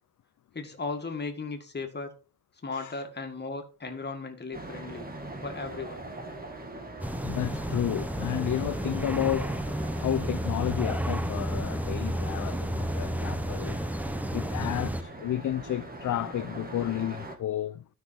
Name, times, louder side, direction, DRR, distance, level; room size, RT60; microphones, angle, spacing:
voice 1, 0.5-2.1 2.6-5.1 5.4-6.1, left 4 dB, 25° left, 1.9 m, -36 dB
voice 2, 2.7-3.0 7.2-9.6 10.0-14.0 14.3-17.9, left 12 dB, 50° left, 0.4 m, -32 dB
sound 1, 4.5-17.4, right 2 dB, 20° right, 1.6 m, -42 dB
sound 2, 7.0-15.0, right 1 dB, 5° right, 0.6 m, -31 dB
13.0 x 6.1 x 4.4 m
wide cardioid pair, 175°, 41 cm